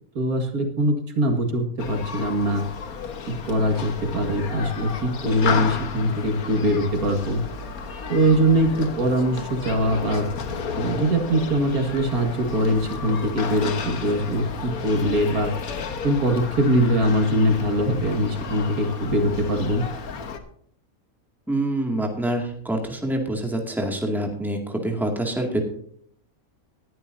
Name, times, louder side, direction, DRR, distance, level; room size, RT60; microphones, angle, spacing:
voice 1, 0.2-2.6 3.3-7.4 8.1-10.2 10.7-15.5 16.0-19.8, right 1 dB, 80° right, 4 dB, 2.3 m, -22 dB
Human group actions, 1.8-20.4, left 5 dB, 80° left, 1.6 m, -33 dB
voice 2, 21.5-25.6, right 1 dB, ahead, 2 dB, 2.1 m, -26 dB
19.5 x 11.0 x 2.7 m, 0.63 s
omnidirectional pair, 1.5 m